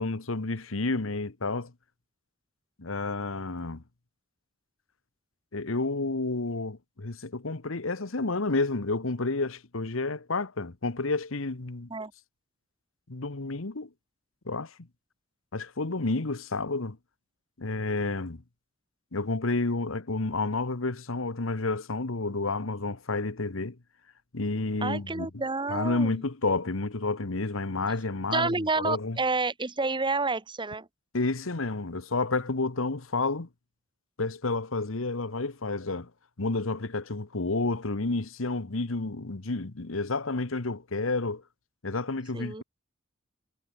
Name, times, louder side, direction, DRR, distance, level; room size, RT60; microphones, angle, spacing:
voice 1, 0.0-1.7 2.8-3.8 5.5-11.9 13.1-13.9 14.4-14.7 15.5-17.0 17.6-18.4 19.1-23.8 24.3-25.3 25.7-29.2 31.1-33.5 34.2-36.1 36.4-41.4 41.8-42.6, left 3 dB, 75° left, 1.3 m, -30 dB
voice 2, 24.8-26.2 28.3-30.9 42.3-42.6, right 3 dB, 25° right, 1.4 m, -29 dB
head